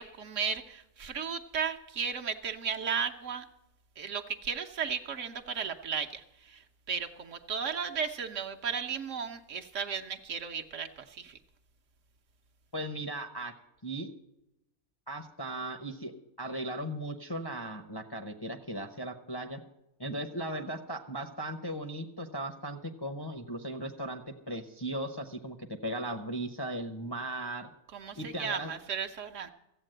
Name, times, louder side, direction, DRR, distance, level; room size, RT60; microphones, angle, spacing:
voice 1, 0.0-3.5 4.0-11.4 27.9-29.5, right 6 dB, 60° right, 4 dB, 1.1 m, -35 dB
voice 2, 12.7-13.5 13.8-14.1 15.1-16.1 16.4-19.6 20.0-25.6 25.8-27.7 28.2-28.7, right 1 dB, 25° left, 4 dB, 0.6 m, -37 dB
14.5 x 8.2 x 7.8 m, 0.90 s
omnidirectional pair, 1.5 m